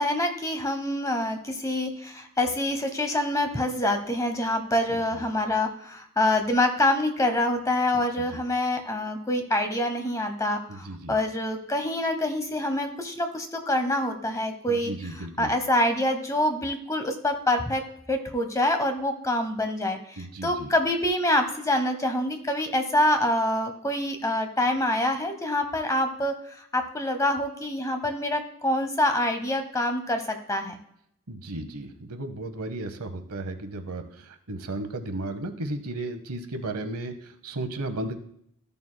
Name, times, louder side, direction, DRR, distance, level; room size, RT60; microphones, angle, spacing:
voice 1, 0.0-14.9 15.4-17.8 18.1-20.0 20.4-26.3 26.7-30.8, left 1 dB, 15° left, 6 dB, 0.9 m, -26 dB
voice 2, 4.9-5.2 8.2-8.3 10.7-11.2 14.7-15.5 20.2-20.7 31.3-38.2, right 2 dB, 80° right, 8 dB, 0.9 m, -34 dB
13.5 x 6.8 x 2.2 m, 0.69 s
head